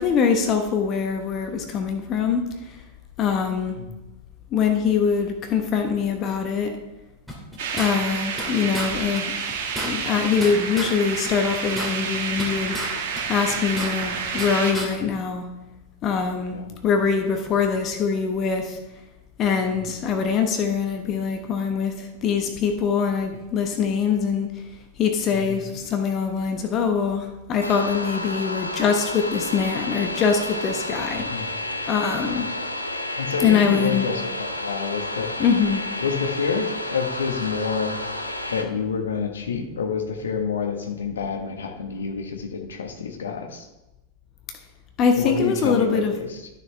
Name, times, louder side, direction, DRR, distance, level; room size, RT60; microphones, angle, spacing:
voice 1, 0.0-2.8 3.2-3.8 4.5-6.8 7.7-9.3 9.8-12.8 13.3-15.5 16.0-16.6 16.8-18.8 19.4-24.6 25.0-31.5 31.9-32.5 33.4-34.0 35.4-35.8 45.0-46.1, left 6 dB, 35° left, 5 dB, 1.0 m, -23 dB
sound 1, 7.3-8.5 8.7-8.9 9.2-9.3 9.5-10.9 11.3-12.9 13.2-14.5 14.7-14.9, equal, ahead, 2.3 m, -32 dB
sound 2, 7.6-14.7, right 6 dB, 50° right, 1.6 m, -29 dB
sound 3, 27.6-38.6, left 1 dB, 90° left, 0.7 m, -31 dB
voice 2, 33.2-35.3 36.0-38.0 38.5-43.7 45.1-46.5, left 5 dB, 65° left, 4 dB, 1.2 m, -28 dB
12.0 x 6.7 x 3.3 m, 1.0 s
figure-of-eight pair, 90°, 0 cm